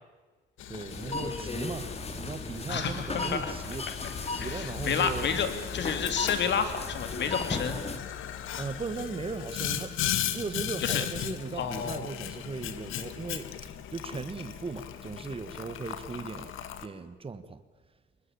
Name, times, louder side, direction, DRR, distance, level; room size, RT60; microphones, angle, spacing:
Boiling, 0.6-16.9, left 10 dB, 85° left, 1.7 m, -37 dB
voice 1, 0.7-3.9 4.3-5.3 8.6-17.6, right 4 dB, 30° right, 11 dB, 1.6 m, -38 dB
sound 1, 0.9-8.0, left 3 dB, 30° left, 2.5 m, -36 dB
voice 2, 2.7-3.5 3.9-4.0 4.4-7.8 10.8-11.0 11.6-12.1, left 7 dB, 65° left, 9 dB, 3.2 m, -30 dB
24.0 x 20.5 x 8.7 m, 1.3 s
cardioid pair, 90°, 20 cm